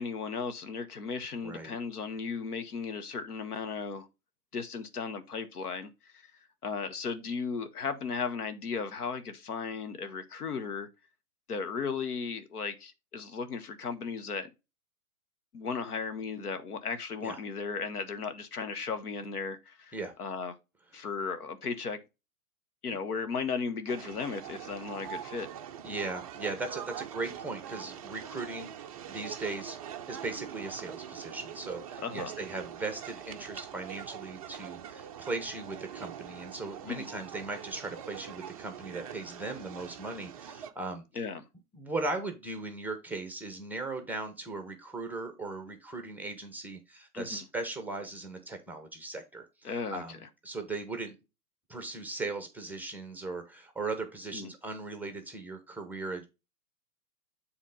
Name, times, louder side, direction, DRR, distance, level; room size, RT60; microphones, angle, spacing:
voice 1, 0.0-4.1 4.5-6.3 6.6-10.9 11.5-14.5 15.5-20.5 20.9-22.0 22.8-25.5 32.0-32.3 36.9-37.1 41.1-41.4 47.1-47.4 49.6-50.0 54.3-54.5, left 5 dB, 75° left, 1.4 m, -36 dB
voice 2, 1.4-1.8 17.2-17.4 19.9-20.1 25.8-29.8 30.1-41.2 41.8-51.2 51.7-56.2, right 3 dB, 5° right, 0.9 m, -38 dB
sound 1, 23.9-40.7, right 9 dB, 25° right, 0.4 m, -43 dB
7.4 x 3.6 x 5.2 m
hypercardioid pair, 120°, 46 cm